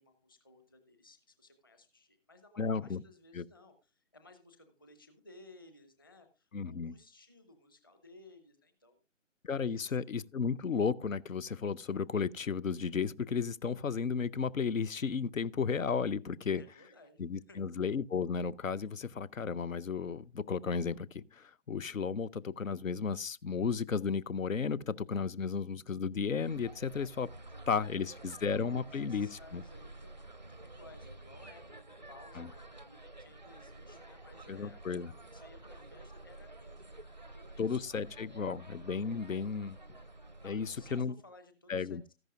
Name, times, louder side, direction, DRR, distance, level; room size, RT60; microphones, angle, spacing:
voice 1, 0.0-9.0 9.6-10.0 16.5-17.6 27.5-28.0 28.8-37.0 37.3-38.0 40.4-42.1, left 2 dB, 15° left, 0.8 m, -59 dB
voice 2, 2.6-3.0 3.3-3.4 6.5-6.9 9.4-16.6 17.2-27.3 27.7-29.6 32.4-32.5 34.5-35.1 37.6-39.8 40.4-41.1 41.7-42.0, left 5 dB, 85° left, 0.6 m, -34 dB
sound 1, 26.4-41.0, right 2 dB, 35° right, 0.4 m, -50 dB
13.5 x 11.0 x 2.5 m
figure-of-eight pair, 150°, 39 cm